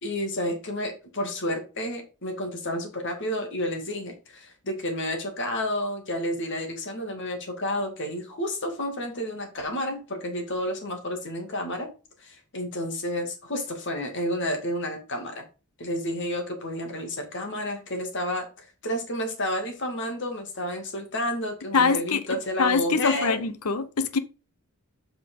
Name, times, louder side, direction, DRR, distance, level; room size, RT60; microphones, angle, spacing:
voice 1, 0.0-11.9 12.2-15.4 15.8-18.5 18.8-23.4, left 1 dB, 55° left, 2.4 m, -30 dB
voice 2, 21.7-22.2 22.6-24.2, left 5 dB, 85° left, 0.9 m, -23 dB
7.7 x 5.7 x 3.9 m
head